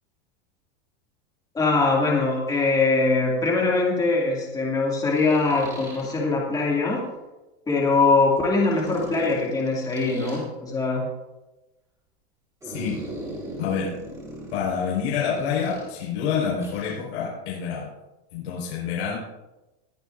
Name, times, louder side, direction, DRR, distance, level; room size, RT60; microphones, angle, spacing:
voice 1, 1.5-7.0 7.7-11.0, left 3 dB, 10° left, -3 dB, 2.4 m, -22 dB
sound 1, 2.5-2.6 5.1-6.1 8.7-10.4 12.6-16.0 16.6-17.0, right 1 dB, 10° right, 4.4 m, -38 dB
voice 2, 12.6-13.0 13.6-13.9 14.5-17.9 18.3-19.1, left 7 dB, 85° left, -5 dB, 4.9 m, -27 dB
21.0 x 9.3 x 2.6 m, 1.0 s
supercardioid pair, 160°, 32 cm